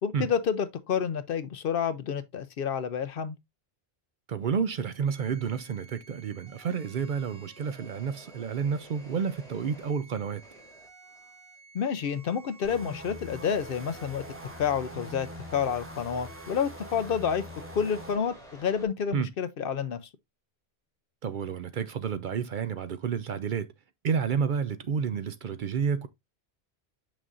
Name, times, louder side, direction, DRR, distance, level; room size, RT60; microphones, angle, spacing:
voice 1, 0.0-3.3 11.7-14.2 14.6-15.3 15.5-17.5 17.7-20.0, left 7 dB, 65° left, 0.8 m, -29 dB
voice 2, 4.3-10.4 19.1-19.3 21.2-23.7 24.0-26.1, right 6 dB, 60° right, 0.6 m, -30 dB
sound 1, 5.1-18.9, right 2 dB, 5° left, 2.6 m, -52 dB
sound 2, 12.6-18.2, equal, 15° right, 0.6 m, -43 dB
6.2 x 6.1 x 2.5 m
omnidirectional pair, 1.1 m